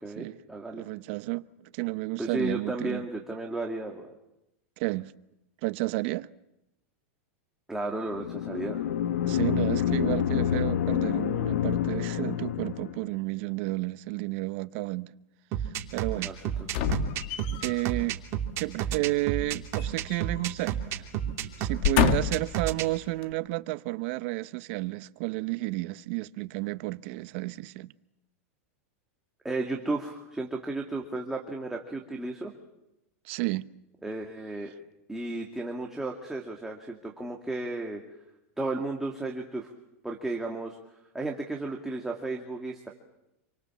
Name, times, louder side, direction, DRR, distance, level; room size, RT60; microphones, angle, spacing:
voice 1, 0.0-0.8 2.2-4.2 7.7-8.8 16.2-16.4 16.7-16.9 29.4-32.5 34.0-34.7 35.1-38.0 38.6-39.7 40.0-40.8 41.1-42.9, right 2 dB, 5° right, 2.4 m, -34 dB
voice 2, 0.7-3.0 4.8-5.1 5.6-6.3 9.3-15.1 15.9-16.3 17.6-18.2 18.6-21.0 21.6-27.9 33.2-33.7, right 21 dB, 55° right, 0.9 m, -31 dB
sound 1, 8.1-13.1, left 10 dB, 90° left, 1.1 m, -28 dB
sound 2, 15.5-22.9, right 10 dB, 40° right, 3.0 m, -31 dB
sound 3, 16.7-17.8 19.4-20.5 20.8-21.0 21.6-22.6 23.2-23.3, left 8 dB, 55° left, 1.8 m, -28 dB
27.5 x 24.5 x 7.4 m
supercardioid pair, 135°, 8 cm